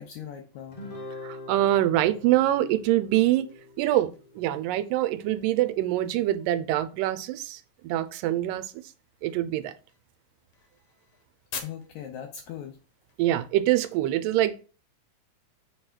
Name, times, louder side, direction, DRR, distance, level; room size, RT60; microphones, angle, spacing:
voice 1, 0.0-1.1 11.6-12.8, left 9 dB, 80° left, 1.6 m, -40 dB
Guitar, 0.7-5.3, left 2 dB, 35° left, 0.8 m, -44 dB
voice 2, 1.2-3.5 3.8-8.7 9.2-9.7 13.2-14.6, right 14 dB, 90° right, 2.2 m, -25 dB
sound 1, 2.3-14.1, left 6 dB, 65° left, 1.9 m, -50 dB
6.7 x 3.2 x 4.4 m
omnidirectional pair, 3.8 m